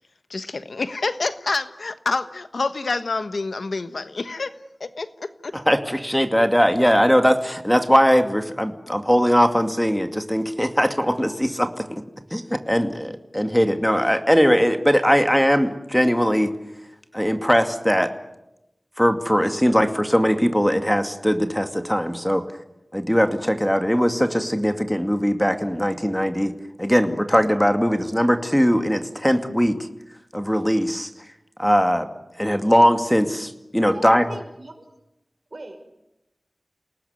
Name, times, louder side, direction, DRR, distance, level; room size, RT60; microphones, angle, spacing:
voice 1, 0.3-4.5 4.8-5.5, left 3 dB, 90° left, 11 dB, 1.3 m, -27 dB
voice 2, 5.5-12.0 12.3-16.5 17.1-18.1 19.0-22.5 22.9-26.5 26.8-29.8 30.3-31.1 31.6-32.1 32.4-34.3, equal, 5° left, 7 dB, 2.3 m, -20 dB
voice 3, 33.8-34.9 35.5-35.9, right 2 dB, 65° right, 5 dB, 5.6 m, -39 dB
29.0 x 19.0 x 9.6 m, 0.89 s
wide cardioid pair, 50°, 0 cm